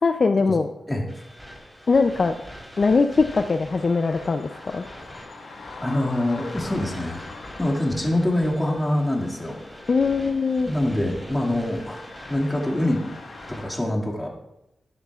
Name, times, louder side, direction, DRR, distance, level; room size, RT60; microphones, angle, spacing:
voice 1, 0.0-0.7 1.9-2.3 2.8-4.8 9.9-10.7, left 4 dB, 55° left, 7 dB, 0.5 m, -21 dB
sound 1, 1.1-13.7, equal, 10° right, 3.8 m, -44 dB
sound 2, 3.7-13.7, left 3 dB, 85° left, 1.5 m, -43 dB
voice 2, 5.8-7.2 7.6-9.6 10.7-13.0 13.6-14.3, left 1 dB, 15° left, -1 dB, 2.2 m, -24 dB
12.5 x 10.5 x 2.4 m, 0.89 s
cardioid pair, 70°, 0 cm